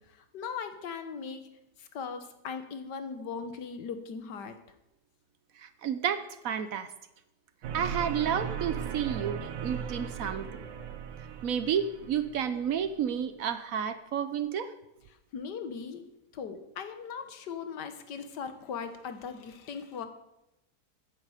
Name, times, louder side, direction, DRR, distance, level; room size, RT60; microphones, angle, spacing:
voice 1, 0.1-1.5 1.8-4.5 15.1-16.0 16.3-20.1, left 6 dB, 85° left, 8 dB, 1.7 m, -39 dB
voice 2, 5.6-6.9 7.7-10.5 11.4-14.7, right 8 dB, 65° right, 11 dB, 1.0 m, -31 dB
sound 1, 7.6-12.9, right 8 dB, 90° right, 1.5 m, -37 dB
14.5 x 9.4 x 4.9 m, 0.91 s
omnidirectional pair, 1.8 m